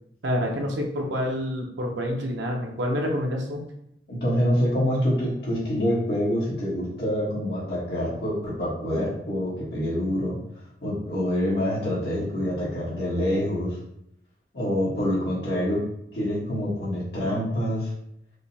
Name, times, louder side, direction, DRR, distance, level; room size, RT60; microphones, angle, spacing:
voice 1, 0.2-3.7, equal, 85° right, 1 dB, 0.7 m, -27 dB
voice 2, 4.1-10.4 10.8-13.8 14.5-15.8 16.1-17.9, equal, 65° left, -7 dB, 1.3 m, -26 dB
4.9 x 2.0 x 2.7 m, 0.75 s
head